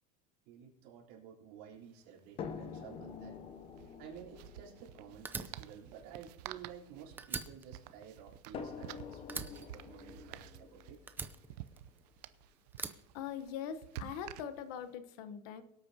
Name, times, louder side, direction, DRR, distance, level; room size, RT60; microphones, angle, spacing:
voice 1, 0.5-3.4 4.0-11.0, right 8 dB, 75° right, -4 dB, 3.8 m, -52 dB
sound 1, 1.7-1.8 2.0-2.2 3.7-14.9, right 13 dB, 90° right, 0.6 m, -51 dB
sound 2, 2.4-7.6 8.5-12.5 13.5-13.6 14.0-14.1, left 6 dB, 30° left, 0.7 m, -48 dB
Fire, 5.3-6.9 7.2-8.9 9.3-10.6 11.1-12.2 12.7-13.9, right 4 dB, 10° right, 0.5 m, -44 dB
voice 2, 13.1-15.6, left 8 dB, 70° left, 12 dB, 1.1 m, -42 dB
23.5 x 8.5 x 2.9 m, 0.90 s
cardioid pair, 160°, 20 cm